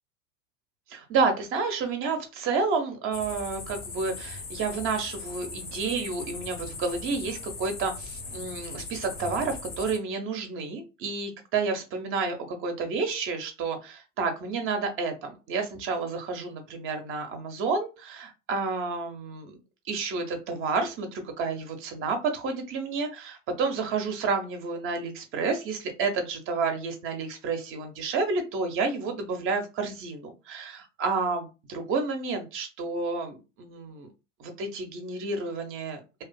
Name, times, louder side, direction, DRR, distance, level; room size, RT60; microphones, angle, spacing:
voice 1, 0.9-19.6 19.8-34.1 34.4-36.2, right 4 dB, 35° right, 5 dB, 0.6 m, -30 dB
sound 1, 3.1-10.0, left 3 dB, 25° left, 0.6 m, -39 dB
2.4 x 2.4 x 2.2 m, 0.29 s
figure-of-eight pair, 85°, 38 cm